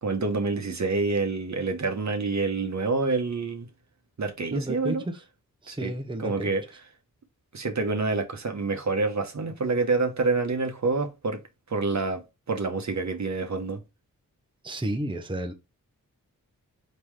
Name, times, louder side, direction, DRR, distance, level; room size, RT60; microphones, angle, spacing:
voice 1, 0.0-3.7 4.2-5.0 5.7-5.9 6.2-6.6 7.5-11.4 11.7-12.2 12.5-13.8, right 3 dB, 50° right, 1.0 m, -27 dB
voice 2, 4.5-5.1 5.6-6.6 14.6-15.5, right 1 dB, 15° right, 0.9 m, -31 dB
4.3 x 3.6 x 3.2 m
cardioid pair, 45°, 35 cm